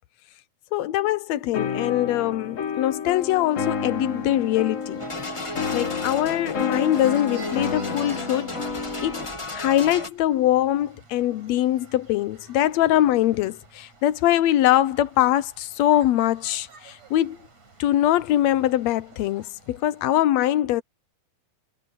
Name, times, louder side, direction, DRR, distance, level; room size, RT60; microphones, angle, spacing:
voice 1, 0.7-5.1 5.7-8.5 9.0-17.4 17.8-20.8, left 13 dB, 75° left, 1.8 m, -22 dB
sound 1, 1.5-9.3, left 5 dB, 60° left, 0.8 m, -30 dB
sound 2, 3.1-20.2, right 3 dB, 60° right, 7.3 m, -51 dB
sound 3, 5.0-10.1, left 1 dB, 35° left, 0.5 m, -34 dB
omnidirectional pair, 3.5 m